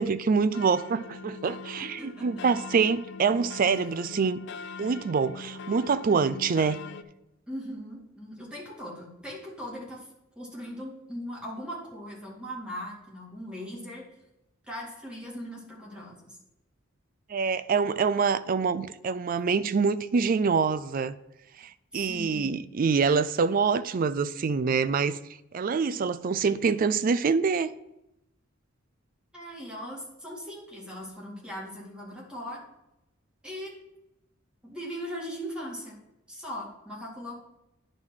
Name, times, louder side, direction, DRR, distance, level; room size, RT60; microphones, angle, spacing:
voice 1, 0.0-4.5 4.8-6.8 17.3-21.1 21.6-25.2 25.5-27.7, right 5 dB, 45° right, 0.4 m, -25 dB
sound 1, 0.5-7.0, left 4 dB, 60° left, 0.4 m, -41 dB
voice 2, 1.8-2.5 7.5-10.1 10.4-14.0 14.7-16.4 21.9-22.6 29.3-32.6 33.4-33.8 34.6-36.0 36.3-37.4, equal, 5° right, 2.2 m, -39 dB
9.9 x 3.8 x 6.1 m
head